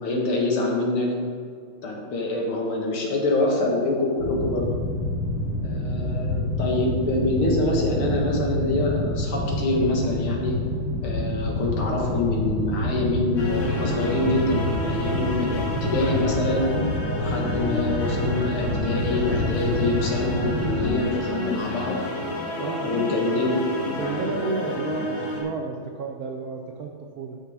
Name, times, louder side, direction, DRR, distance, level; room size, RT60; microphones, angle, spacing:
voice 1, 0.0-1.1 1.8-4.7 5.6-10.6 11.0-16.8 17.2-22.0 22.8-23.5, left 2 dB, 85° left, -1 dB, 2.5 m, -25 dB
sound 1, 4.2-20.9, left 1 dB, 40° left, 3.0 m, -27 dB
sound 2, 13.4-25.4, left 2 dB, 65° left, 2.4 m, -30 dB
voice 2, 22.6-23.1 23.9-27.4, right 4 dB, 70° right, 1 dB, 0.9 m, -32 dB
12.5 x 5.7 x 3.6 m, 2.1 s
omnidirectional pair, 2.3 m